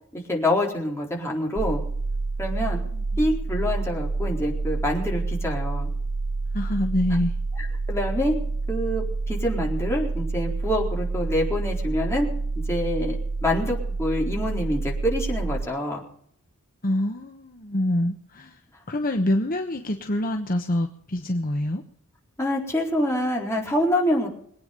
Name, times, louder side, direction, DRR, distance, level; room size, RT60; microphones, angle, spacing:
voice 1, 0.3-1.8 2.4-2.8 3.2-5.9 7.6-8.3 8.7-12.3 12.7-16.0 22.4-24.3, left 1 dB, 10° left, -2 dB, 4.1 m, -26 dB
sound 1, 1.6-15.7, right 3 dB, 40° right, 0.6 m, -28 dB
voice 2, 2.5-3.3 6.5-7.4 16.8-18.6 18.9-21.8, left 1 dB, 40° left, 4 dB, 1.1 m, -26 dB
23.0 x 9.3 x 5.3 m, 0.66 s
head